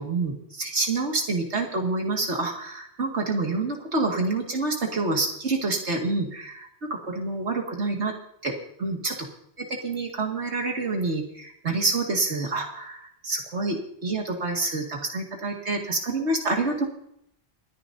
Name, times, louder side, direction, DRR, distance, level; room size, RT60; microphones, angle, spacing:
voice 1, 0.0-8.1 8.4-8.5 8.8-9.2 9.6-16.8, right 3 dB, 85° right, 1 dB, 2.4 m, -27 dB
29.0 x 10.0 x 2.7 m, 0.74 s
omnidirectional pair, 1.1 m